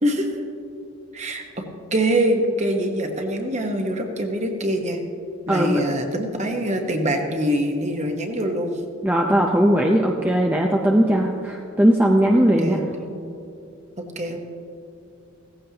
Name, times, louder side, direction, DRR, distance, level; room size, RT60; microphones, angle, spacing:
voice 1, 0.0-0.4 1.1-1.7 1.9-5.0 5.5-8.8 12.6-13.1 14.0-14.6, right 1 dB, 30° right, 3 dB, 1.2 m, -24 dB
voice 2, 5.5-5.8 9.0-12.8, equal, 10° right, 0 dB, 0.6 m, -18 dB
16.5 x 15.0 x 2.9 m, 2.6 s
head